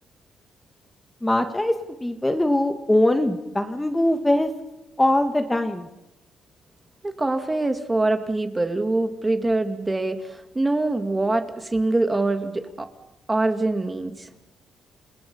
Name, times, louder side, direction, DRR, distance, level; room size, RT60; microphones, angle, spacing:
voice 1, 1.2-1.7 2.0-4.5 5.0-5.9, left 1 dB, 10° left, 6 dB, 1.8 m, -21 dB
voice 2, 7.0-12.9 13.3-14.3, right 2 dB, 20° right, 7 dB, 2.3 m, -24 dB
29.0 x 19.5 x 7.1 m, 0.93 s
cardioid pair, 105°, 0 cm